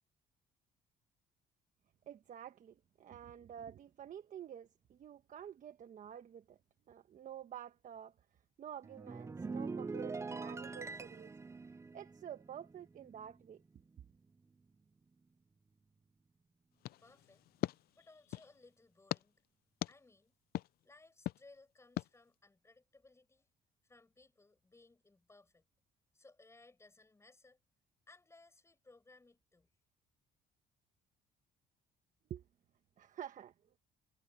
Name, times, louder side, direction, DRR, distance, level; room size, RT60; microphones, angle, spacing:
voice 1, 2.1-6.6 6.9-8.1 8.6-11.3 11.9-13.6 32.3-32.4 33.0-33.5, right 9 dB, 50° right, 1.3 m, -49 dB
sound 1, 8.8-13.5 13.7-14.0, right 4 dB, 15° right, 0.6 m, -44 dB
sound 2, 16.8-18.5 19.1-19.2 19.8-19.9 20.5-20.7 21.2-21.4 22.0-22.1, left 15 dB, 65° left, 0.5 m, -40 dB
voice 2, 17.0-17.4 17.9-19.4 19.9-20.3 20.8-23.5 23.8-25.6 26.1-27.6 28.1-29.7, left 3 dB, 15° left, 6.2 m, -63 dB
cardioid pair, 110°, 17 cm